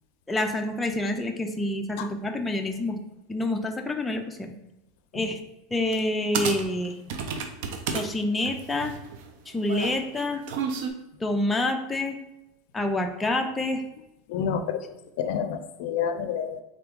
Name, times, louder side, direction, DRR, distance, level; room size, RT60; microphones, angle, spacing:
voice 1, 0.3-3.0 3.3-4.5 5.1-5.4 5.7-7.0 7.9-8.9 9.5-10.4 11.2-12.2 12.7-13.8, left 2 dB, 10° left, 4 dB, 0.4 m, -27 dB
sound 1, 5.9-6.1 6.3-8.1 8.4-10.9, right 6 dB, 65° right, 0.6 m, -31 dB
voice 2, 14.3-14.8 15.2-16.6, left 7 dB, 65° left, 9 dB, 0.4 m, -28 dB
3.8 x 3.5 x 3.6 m, 0.90 s
supercardioid pair, 135°, 0 cm